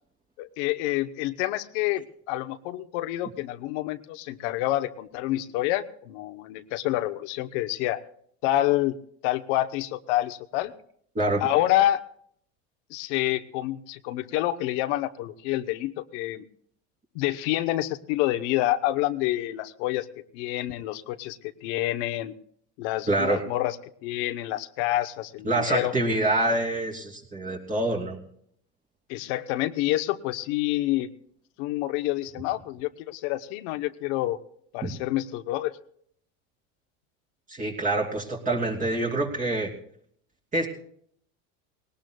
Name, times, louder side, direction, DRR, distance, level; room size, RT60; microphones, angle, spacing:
voice 1, 0.4-8.0 8.4-8.9 9.2-10.7 11.4-12.0 12.9-16.5 17.1-20.1 20.3-22.3 22.8-23.8 24.0-25.9 29.1-31.1 31.6-34.4 34.7-35.7, left 15 dB, 70° left, 10 dB, 0.9 m, -28 dB
voice 2, 23.1-23.4 25.4-28.2 34.8-34.9 37.5-39.7 40.5-40.7, right 2 dB, 20° right, 0 dB, 2.9 m, -26 dB
20.0 x 18.5 x 2.3 m, 0.64 s
supercardioid pair, 130°, 36 cm